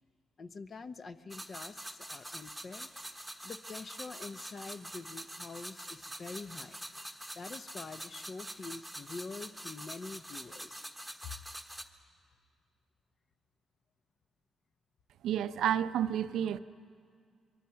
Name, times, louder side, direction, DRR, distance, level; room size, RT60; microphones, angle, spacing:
voice 1, 0.4-2.9 3.4-6.8 7.3-10.9 11.2-11.3, left 4 dB, 45° left, 0.9 m, -45 dB
sound 1, 1.3-11.8, right 1 dB, ahead, 1.3 m, -45 dB
voice 2, 15.2-16.6, right 10 dB, 75° right, 0.6 m, -30 dB
24.0 x 23.5 x 5.8 m
cardioid pair, 90°, 0 cm